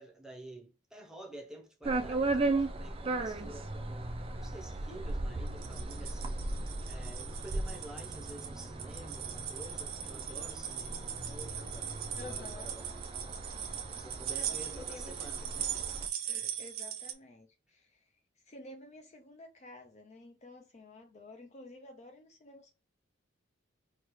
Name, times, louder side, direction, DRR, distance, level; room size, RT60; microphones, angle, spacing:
voice 1, 0.0-6.5 6.9-12.9 14.0-15.8 16.2-16.6, right 1 dB, 5° right, 0.7 m, -50 dB
sound 1, 1.8-16.1, right 2 dB, 30° right, 0.4 m, -37 dB
sound 2, 5.3-7.1, equal, 80° left, 1.7 m, -45 dB
sound 3, 5.5-17.1, right 9 dB, 85° right, 0.6 m, -40 dB
voice 2, 12.1-12.8 14.3-15.7 16.5-18.1 18.4-22.7, left 2 dB, 35° left, 0.5 m, -51 dB
4.7 x 2.3 x 3.1 m
head